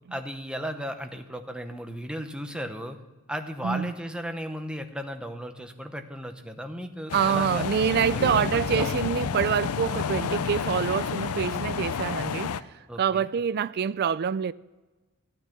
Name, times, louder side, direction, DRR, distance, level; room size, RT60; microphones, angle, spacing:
voice 1, 0.1-3.0 3.3-7.6 7.9-8.9 12.9-13.3, equal, 5° right, 0.8 m, -35 dB
voice 2, 3.6-3.9 7.1-12.6 13.0-14.5, right 7 dB, 45° right, 0.3 m, -26 dB
sound 1, 7.1-12.6, left 6 dB, 85° left, 0.5 m, -30 dB
14.5 x 9.3 x 5.8 m
head